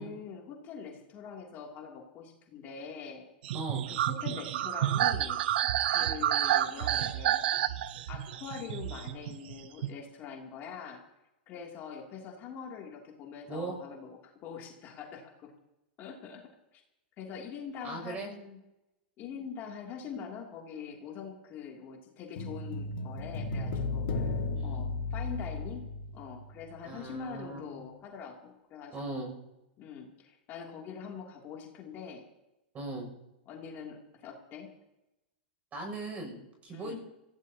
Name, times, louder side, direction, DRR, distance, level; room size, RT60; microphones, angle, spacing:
voice 1, 0.0-3.2 3.9-5.4 5.9-7.4 8.1-11.0 11.5-15.5 16.0-16.8 17.2-18.6 19.2-25.8 26.1-29.2 29.8-32.2 33.5-34.7 36.7-37.0, left 6 dB, 35° left, 0 dB, 2.8 m, -44 dB
sound 1, 3.4-9.9, right 12 dB, 70° right, 0.8 m, -30 dB
voice 2, 3.5-3.9 13.5-13.8 17.8-18.3 24.5-24.8 26.8-27.9 28.9-29.3 32.7-33.1 35.7-37.0, right 2 dB, 25° right, 3 dB, 6.9 m, -39 dB
sound 2, 22.4-26.8 27.1-27.2, left 3 dB, 60° left, 1.9 m, -35 dB
25.0 x 16.0 x 2.9 m, 0.94 s
hypercardioid pair, 130°, 6 cm